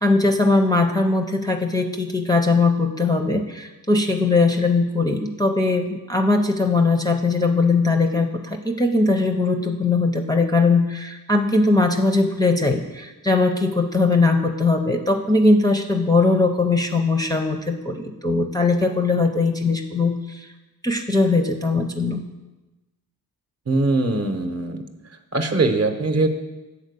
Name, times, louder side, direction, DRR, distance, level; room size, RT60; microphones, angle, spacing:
voice 1, 0.0-20.5 20.8-22.2, left 3 dB, 10° left, 2 dB, 0.5 m, -20 dB
voice 2, 23.7-24.8 25.3-26.3, right 2 dB, 45° right, 6 dB, 0.8 m, -21 dB
7.3 x 4.0 x 6.7 m, 1.1 s
cardioid pair, 85°, 37 cm